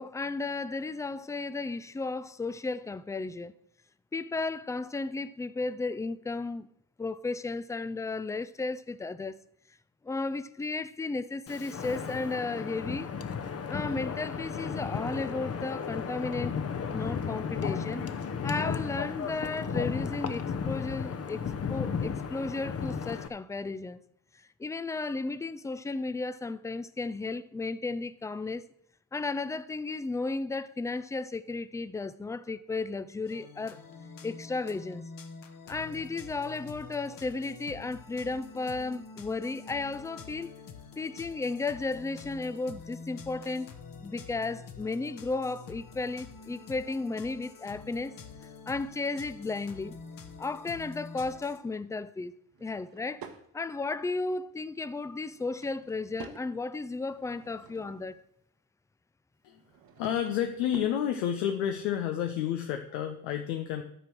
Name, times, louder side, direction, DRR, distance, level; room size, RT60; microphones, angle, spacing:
voice 1, 0.0-3.5 4.1-6.7 7.0-9.4 10.0-13.1 13.7-16.6 16.9-18.0 18.4-21.4 21.7-24.0 24.6-28.6 29.1-33.8 34.2-35.0 35.7-40.5 41.0-43.7 44.0-48.1 48.7-49.9 50.4-52.3 52.6-53.2 53.5-58.2, left 3 dB, 10° left, 0.4 m, -34 dB
Wind, 11.5-23.3, left 6 dB, 35° left, 0.9 m, -34 dB
sound 1, 33.3-51.6, left 5 dB, 50° left, 1.2 m, -47 dB
Drawer open or close / Wood, 52.5-53.5 55.2-56.5 57.0-58.2 59.5-61.0, right 6 dB, 55° right, 1.2 m, -49 dB
voice 2, 60.0-63.8, left 10 dB, 80° left, 0.8 m, -30 dB
12.0 x 4.4 x 6.2 m
hypercardioid pair, 55°, 42 cm